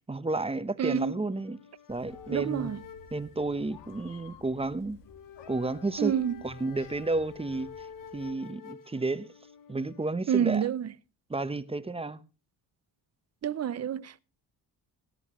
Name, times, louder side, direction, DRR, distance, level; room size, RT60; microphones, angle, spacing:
voice 1, 0.1-1.6 1.9-2.7 3.1-5.0 5.5-6.1 6.4-7.9 8.1-9.3 9.7-10.6 11.3-12.2, right 2 dB, 15° right, 0.9 m, -31 dB
voice 2, 0.8-1.2 2.3-2.8 6.0-6.4 10.3-10.9 13.4-14.2, right 9 dB, 35° right, 0.7 m, -28 dB
sound 1, 1.3-10.1, left 7 dB, 45° left, 1.2 m, -50 dB
Meow, 1.9-8.2, left 4 dB, 70° left, 2.4 m, -54 dB
19.0 x 11.0 x 3.1 m
cardioid pair, 105°, 44 cm